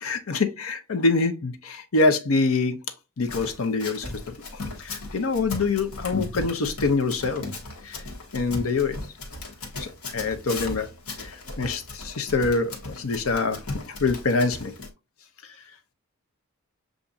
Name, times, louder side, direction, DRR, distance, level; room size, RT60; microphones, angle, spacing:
voice 1, 0.0-2.8 3.2-4.0 4.8-7.4 7.8-8.0 8.3-9.0 9.8-10.9 11.2-14.7, left 3 dB, 70° left, 0.7 m, -25 dB
Run, 3.3-14.9, left 2 dB, 90° left, 1.2 m, -36 dB
6.9 x 2.5 x 2.5 m
head